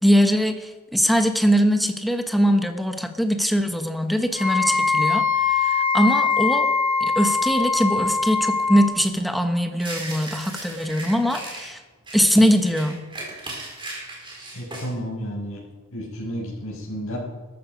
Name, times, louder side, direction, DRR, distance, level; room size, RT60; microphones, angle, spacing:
voice 1, 0.0-6.7 7.0-11.8 12.1-13.0, equal, ahead, 6 dB, 1.1 m, -21 dB
Wind instrument woodwind instrument, 4.3-8.9, left 5 dB, 40° left, 2.8 m, -22 dB
sound 1, 9.8-11.7 12.1-14.9, right 2 dB, 25° right, 4.2 m, -37 dB
voice 2, 14.5-15.6 15.9-17.2, equal, 70° left, -4 dB, 6.2 m, -31 dB
13.5 x 13.0 x 5.2 m, 1.2 s
head